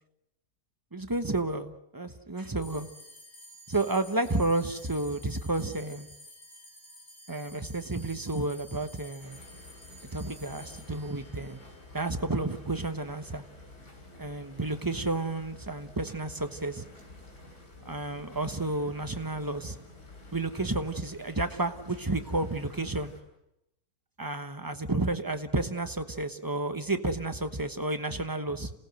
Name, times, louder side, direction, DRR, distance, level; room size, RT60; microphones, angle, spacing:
voice 1, 0.9-2.9 3.7-6.1 7.3-9.4 10.1-11.6 11.9-13.4 14.2-16.8 17.8-19.8 20.3-23.1 24.2-28.7, right 2 dB, 15° right, 8 dB, 0.9 m, -31 dB
sound 1, 2.6-13.2, equal, 45° left, 3.8 m, -52 dB
sound 2, 9.2-23.2, left 1 dB, 85° left, 4.5 m, -50 dB
28.0 x 17.5 x 7.9 m, 0.85 s
omnidirectional pair, 1.7 m